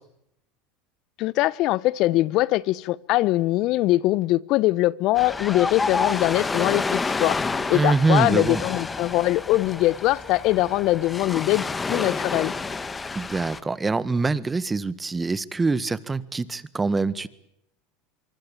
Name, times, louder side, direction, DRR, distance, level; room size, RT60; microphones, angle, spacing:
voice 1, 1.2-7.4 7.7-12.5, left 17 dB, 55° left, 1.0 m, -22 dB
Ocean, 5.1-13.6, left 4 dB, 15° left, 1.7 m, -29 dB
voice 2, 7.7-8.6 13.1-17.3, right 3 dB, 15° right, 1.6 m, -24 dB
24.5 x 23.5 x 8.9 m
supercardioid pair, 105°, 0 cm